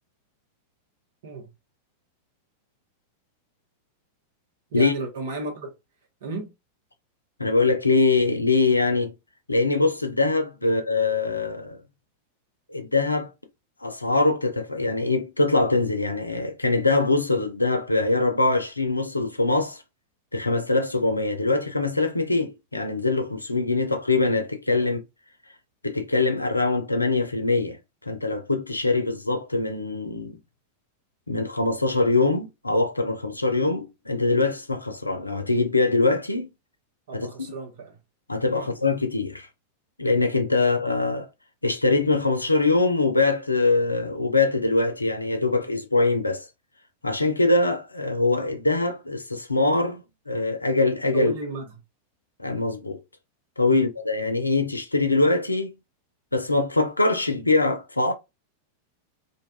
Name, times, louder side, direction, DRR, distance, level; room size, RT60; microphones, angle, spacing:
voice 1, 4.7-5.7 6.2-6.5 10.6-10.7 24.8-24.9 37.1-38.0 38.5-38.7 51.1-51.6 53.7-53.9, right 2 dB, 60° right, 0.9 m, -33 dB
voice 2, 7.4-9.1 9.5-11.8 12.7-13.3 13.8-19.8 20.3-25.0 25.8-27.8 28.1-30.4 31.3-36.5 37.1-37.5 38.3-39.5 40.0-41.3 41.6-46.5 47.0-51.3 52.4-53.0 53.6-55.7 56.3-58.1, left 3 dB, 85° left, 0.4 m, -23 dB
2.5 x 2.2 x 2.3 m
figure-of-eight pair, 90°, 0 cm